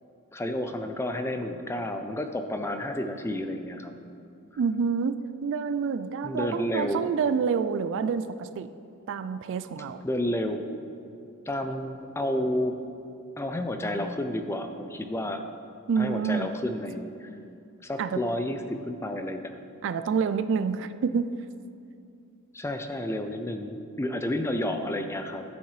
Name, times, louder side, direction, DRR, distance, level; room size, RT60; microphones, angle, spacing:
voice 1, 0.3-3.9 6.2-7.1 10.0-10.7 11.5-12.7 13.4-15.4 16.0-17.3 17.8-19.5 22.5-25.4, left 1 dB, 10° left, 7 dB, 0.4 m, -31 dB
voice 2, 4.6-5.2 5.4-8.7 9.1-10.0 15.9-16.5 18.0-18.2 19.8-21.3, right 6 dB, 55° right, 11 dB, 0.3 m, -27 dB
12.5 x 7.1 x 3.2 m, 2.5 s
head